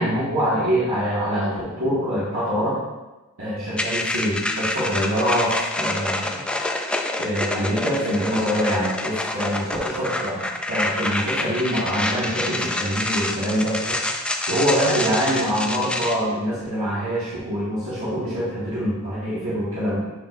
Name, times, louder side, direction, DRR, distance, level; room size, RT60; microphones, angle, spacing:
voice 1, 0.0-2.8 3.4-6.3 7.2-14.0 14.5-20.0, equal, 85° right, -10 dB, 2.1 m, -24 dB
sound 1, 3.8-16.1, left 1 dB, 5° left, 0.4 m, -27 dB
8.1 x 5.7 x 2.7 m, 1.1 s
head